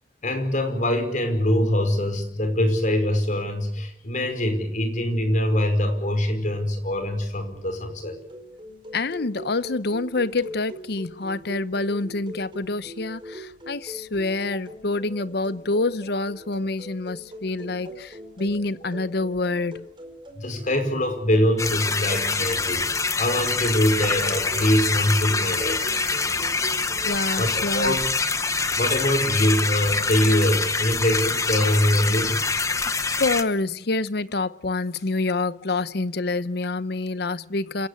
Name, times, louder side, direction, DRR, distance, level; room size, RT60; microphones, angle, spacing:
voice 1, 0.2-8.2 20.3-22.8 23.2-25.8 27.4-28.0 28.7-32.4, left 1 dB, 45° left, 5.0 m, -23 dB
sound 1, 8.0-27.1, equal, 30° right, 4.7 m, -42 dB
voice 2, 8.9-19.9 27.0-28.0 32.9-37.9, left 3 dB, 65° left, 0.8 m, -27 dB
sound 2, 21.6-33.4, left 4 dB, 20° left, 1.1 m, -25 dB
28.0 x 16.5 x 8.3 m
head